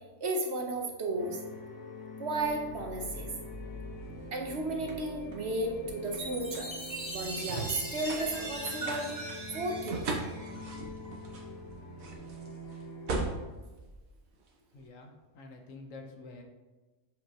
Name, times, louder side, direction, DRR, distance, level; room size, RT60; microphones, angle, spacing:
voice 1, 0.2-1.4 2.2-3.3 4.3-6.7 7.1-9.1 9.5-10.2, right 2 dB, 55° right, 2 dB, 1.1 m, -34 dB
sound 1, 1.2-13.4, left 1 dB, 40° left, 1.6 m, -45 dB
sound 2, 2.4-14.7, right 3 dB, 85° right, 1.5 m, -41 dB
Chime, 6.2-10.9, right 1 dB, 25° right, 1.8 m, -40 dB
voice 2, 14.6-16.4, left 3 dB, 70° left, 3 dB, 1.3 m, -48 dB
7.4 x 5.7 x 2.9 m, 1.2 s
omnidirectional pair, 1.4 m